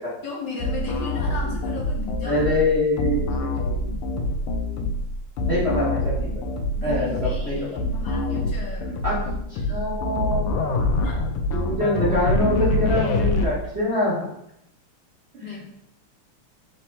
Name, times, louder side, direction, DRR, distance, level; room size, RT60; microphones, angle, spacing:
voice 1, 0.2-2.4 6.8-9.0 11.0-11.2 15.4-15.6, left 4 dB, 60° left, -3 dB, 1.3 m, -36 dB
sound 1, 0.6-13.5, left 2 dB, 90° left, 1.5 m, -25 dB
voice 2, 2.2-3.7 5.5-6.3 6.8-7.6 9.0-9.2 9.5-10.6 11.5-14.1 15.3-15.5, left 1 dB, 40° right, -8 dB, 1.1 m, -24 dB
4.1 x 2.9 x 4.4 m, 0.77 s
omnidirectional pair, 2.4 m